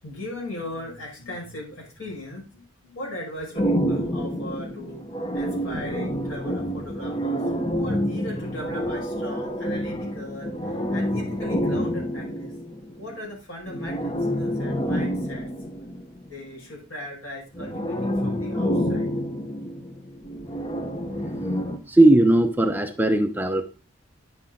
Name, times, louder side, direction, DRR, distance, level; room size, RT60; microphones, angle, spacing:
voice 1, 0.0-5.0 5.3-12.5 13.0-15.5 16.2-19.1, left 1 dB, 80° left, -2 dB, 5.7 m, -38 dB
sound 1, 3.5-13.2 13.7-16.3 17.5-21.8, equal, 25° left, 0.9 m, -28 dB
voice 2, 21.9-23.6, right 1 dB, 10° right, 6 dB, 0.6 m, -18 dB
10.0 x 7.2 x 3.8 m, 0.33 s
head